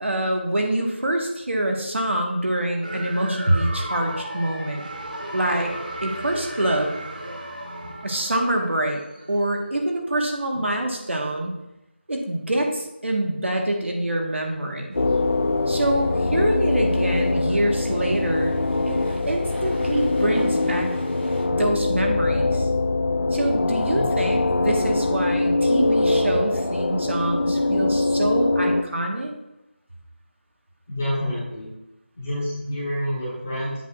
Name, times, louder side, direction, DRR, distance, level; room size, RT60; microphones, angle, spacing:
voice 1, 0.0-4.8 5.3-5.7 6.0-6.9 8.0-11.5 12.1-15.0 15.7-18.6 18.9-19.0 19.3-21.0 21.5-22.7 23.3-29.3, right 1 dB, 80° right, 2 dB, 1.5 m, -25 dB
sound 1, 2.8-9.4, right 1 dB, 45° right, 0.9 m, -35 dB
sound 2, 14.9-21.4, equal, 15° right, 1.2 m, -43 dB
sound 3, 15.0-28.8, left 2 dB, 90° left, 0.6 m, -23 dB
voice 2, 30.9-31.7 32.1-33.8, equal, 10° left, -9 dB, 1.2 m, -28 dB
7.9 x 6.2 x 2.5 m, 0.92 s
figure-of-eight pair, 180°, 6 cm